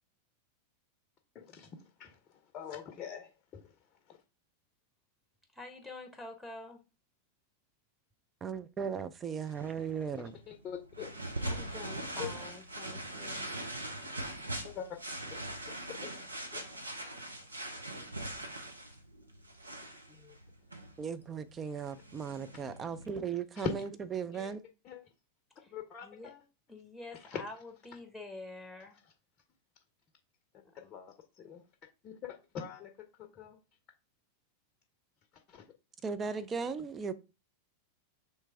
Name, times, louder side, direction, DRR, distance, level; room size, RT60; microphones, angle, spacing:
voice 1, 1.3-2.2 2.5-3.7 4.1-4.2 10.5-11.1 12.2-12.3 14.6-15.0 15.6-16.1 16.5-16.6 20.1-20.3 23.6-23.7 24.2-24.5 24.8-25.0 25.7-26.4 27.2-27.4 30.5-31.6 32.0-32.9 33.2-33.6 35.5-35.7, left 8 dB, 30° left, 0.6 m, -43 dB
voice 2, 5.5-6.8 11.4-13.5 25.6-25.7 26.0-26.3 26.7-29.0, left 2 dB, ahead, 0.9 m, -47 dB
voice 3, 8.4-10.3 21.0-24.6 36.0-37.1, right 6 dB, 20° right, 0.4 m, -37 dB
sound 1, 9.5-23.2, right 1 dB, 80° right, 0.7 m, -42 dB
3.3 x 3.1 x 4.6 m
figure-of-eight pair, 90°, 0 cm